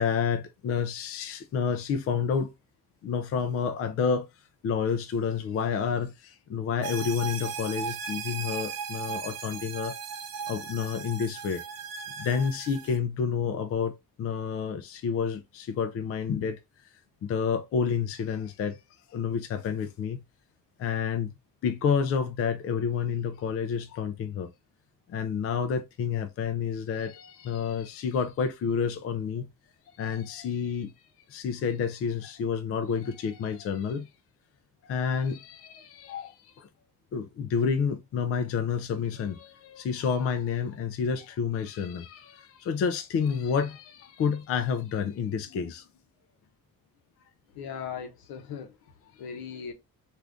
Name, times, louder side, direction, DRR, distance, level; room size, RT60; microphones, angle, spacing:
voice 1, 0.0-2.5 3.0-4.3 4.6-10.0 10.5-11.6 12.2-16.6 17.2-18.8 19.1-20.2 20.8-21.3 21.6-24.5 25.1-29.5 30.0-30.9 31.3-34.1 34.8-36.7 37.1-45.9, left 6 dB, 40° left, 0.4 m, -29 dB
sound 1, 6.8-13.0, right 6 dB, 45° right, 0.6 m, -37 dB
voice 2, 47.5-48.8 49.2-49.7, left 7 dB, 80° left, 0.8 m, -38 dB
2.5 x 2.5 x 3.3 m
cardioid pair, 155°, 36 cm